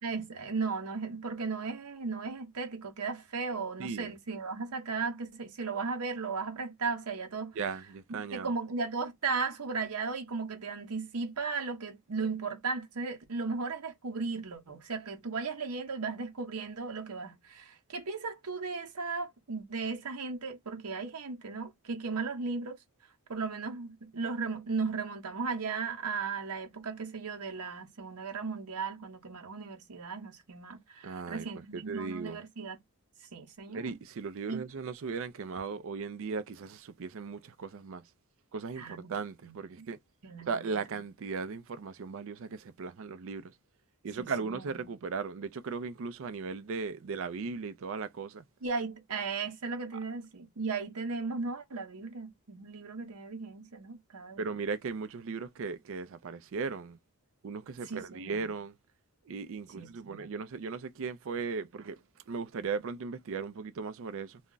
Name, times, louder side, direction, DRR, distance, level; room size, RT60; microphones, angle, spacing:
voice 1, 0.0-7.6 8.3-22.8 23.3-32.8 33.3-34.0 34.5-34.6 38.8-39.1 39.4-39.9 40.2-40.8 44.2-44.9 48.6-54.6 57.8-58.5 59.7-60.3, right 4 dB, 90° right, 0.8 m, -36 dB
voice 2, 7.6-8.5 31.0-31.5 31.7-32.4 33.7-38.0 38.5-40.0 40.5-43.5 44.0-48.4 54.4-57.0 57.4-58.7 59.3-62.0 62.3-64.4, right 5 dB, 60° right, 0.4 m, -37 dB
2.3 x 2.1 x 3.8 m
head